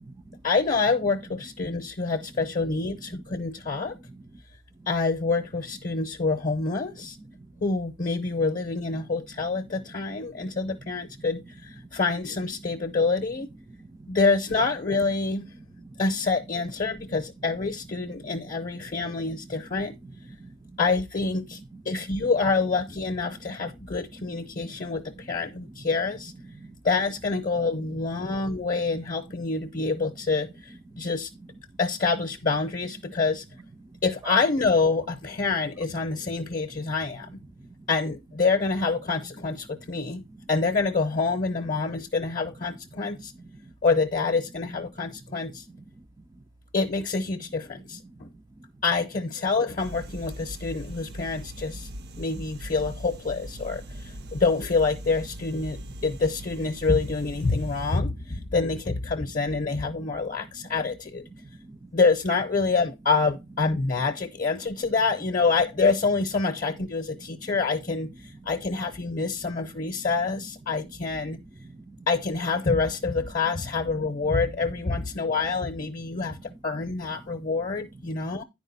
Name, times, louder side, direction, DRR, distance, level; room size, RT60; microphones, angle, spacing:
voice 1, 0.4-4.0 4.9-7.2 7.6-13.5 14.1-15.5 16.0-20.0 20.8-21.6 21.8-26.3 26.8-31.3 31.8-33.4 34.0-37.3 37.9-40.2 40.5-43.3 43.8-45.6 46.7-48.0 48.8-51.9 52.2-61.2 61.9-71.4 72.1-78.4, left 4 dB, 40° left, 0.7 m, -26 dB
voice 2, 21.7-22.1 23.3-23.6 24.2-24.8 25.6-25.8 26.5-26.8 28.5-28.6 30.9-31.1 37.6-37.7 43.6-43.7 45.7-45.8 48.0-48.2 51.2-51.3 54.0-54.1 60.0-60.1 61.3-61.9 69.4-69.5 70.0-70.1 71.6-72.1 75.2-75.3 76.3-76.6 78.3-78.4, right 2 dB, 15° right, 0.3 m, -47 dB
sound 1, 49.8-58.0, equal, 50° right, 0.6 m, -40 dB
9.9 x 4.9 x 4.0 m
head